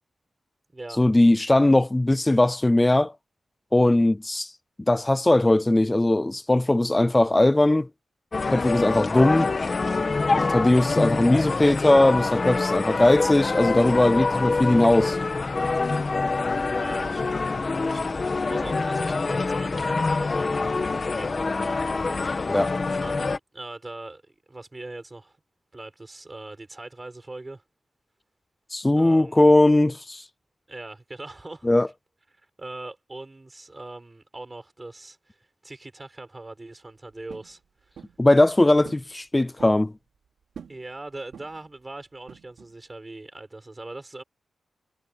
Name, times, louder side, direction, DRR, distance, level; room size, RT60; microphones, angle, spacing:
voice 1, 1.0-3.1 3.7-4.5 4.9-7.9 8.5-9.5 10.4-15.2 22.5-22.7 28.7-30.2 31.6-31.9 38.2-39.9, left 1 dB, 10° left, 0.3 m, -19 dB
sound 1, 8.3-23.4, left 3 dB, 30° left, 1.4 m, -25 dB
voice 2, 16.7-17.5 17.8-22.6 22.9-24.2 24.5-25.4 25.7-27.6 29.0-29.5 30.7-31.7 32.6-37.6 37.9-38.0 40.7-44.2, right 2 dB, 20° right, 6.6 m, -41 dB
sound 2, 37.3-37.5 38.0-38.2 38.8-39.1 39.4-39.8 40.5-40.8 41.3-41.7 42.3-42.8, right 7 dB, 75° right, 4.8 m, -45 dB
wide cardioid pair, 170°, 0 cm